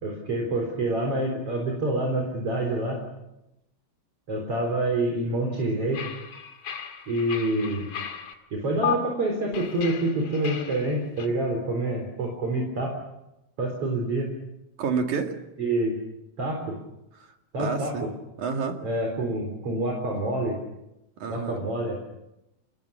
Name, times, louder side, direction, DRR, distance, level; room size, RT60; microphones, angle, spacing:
voice 1, 0.0-3.0 4.3-6.0 7.1-7.9 8.5-12.9 13.6-14.3 15.6-16.0 16.4-16.8 17.5-18.1 18.8-20.6 21.3-22.0, right 1 dB, 50° right, 1 dB, 5.0 m, -27 dB
sound 1, 5.9-8.3 8.8-8.9 9.5-11.3, left 8 dB, 65° left, 3.5 m, -34 dB
voice 2, 14.8-15.4 17.6-18.1 18.4-18.8 21.2-21.7, right 5 dB, 80° right, 4 dB, 3.7 m, -29 dB
28.0 x 21.5 x 7.2 m, 0.91 s
omnidirectional pair, 3.4 m